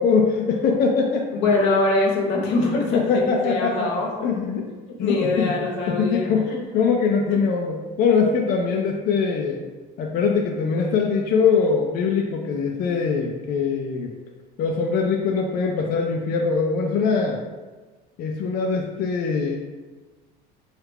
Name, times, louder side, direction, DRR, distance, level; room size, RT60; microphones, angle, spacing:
voice 1, 0.0-1.3 2.6-3.9 4.2-4.7 5.0-5.5 5.9-9.6 10.0-14.1 14.6-17.4 18.2-19.6, left 5 dB, 50° left, 1 dB, 0.4 m, -22 dB
voice 2, 1.3-4.3 4.9-6.6, left 2 dB, 80° left, 0 dB, 0.8 m, -23 dB
3.1 x 2.4 x 3.3 m, 1.3 s
supercardioid pair, 105°, 20 cm